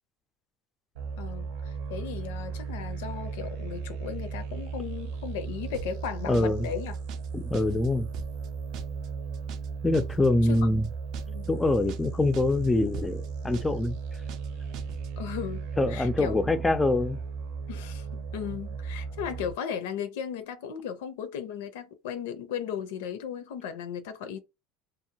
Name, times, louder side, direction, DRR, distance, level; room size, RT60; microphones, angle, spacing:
sound 1, 0.9-19.5, right 5 dB, 90° right, 0.7 m, -36 dB
voice 1, 1.2-7.0 10.4-10.8 11.3-11.5 15.2-16.4 17.7-24.4, left 8 dB, 90° left, 0.6 m, -36 dB
sound 2, 5.7-6.1 6.3-6.7 6.9-7.3 7.5-8.5 8.7-9.1 9.3-9.7 9.9-10.3 10.5-10.9 11.1-11.5 11.7-12.1 12.3-12.7 12.9-13.3 13.5-13.9 14.1-14.5 14.7-15.1, right 7 dB, 55° right, 0.4 m, -43 dB
voice 2, 6.3-6.7 7.3-8.1 9.8-10.9 11.5-14.0 15.8-17.2, left 2 dB, 10° left, 0.3 m, -25 dB
2.7 x 2.0 x 2.8 m
supercardioid pair, 135°, 0 cm